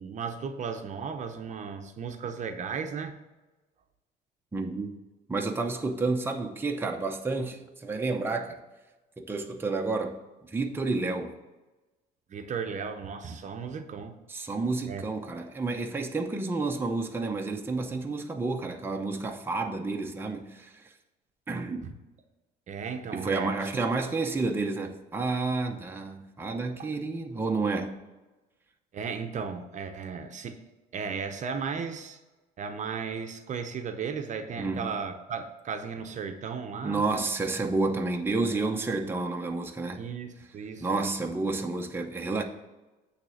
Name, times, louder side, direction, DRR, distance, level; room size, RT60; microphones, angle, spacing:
voice 1, 0.0-3.2 12.3-14.2 14.9-15.0 21.8-22.0 22.7-23.6 26.8-26.9 28.9-30.6 30.9-32.2 32.6-37.1 39.9-41.1, right 6 dB, 45° right, 6 dB, 0.8 m, -35 dB
voice 2, 4.5-4.9 5.3-8.6 9.2-11.3 14.3-20.9 21.5-21.9 23.1-28.0 34.6-34.9 36.8-40.0 40.8-42.4, right 3 dB, 15° right, 3 dB, 0.8 m, -30 dB
8.9 x 3.3 x 6.3 m, 1.1 s
cardioid pair, 110°, 17 cm